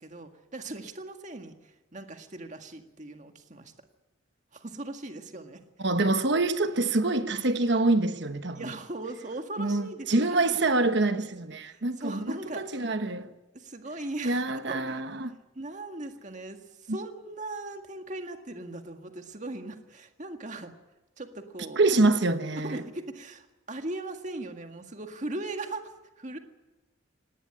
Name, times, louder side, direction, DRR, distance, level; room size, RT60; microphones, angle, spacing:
voice 1, 0.0-3.7 4.5-5.6 7.7-7.8 8.5-10.6 11.6-12.8 13.5-15.0 15.6-20.7 21.2-21.8 22.6-26.4, right 2 dB, 40° right, 1.9 m, -39 dB
voice 2, 5.8-8.6 9.6-13.3 14.2-15.3 16.9-17.0 21.8-22.8, right 2 dB, 60° right, 1.2 m, -26 dB
18.5 x 18.0 x 9.8 m
head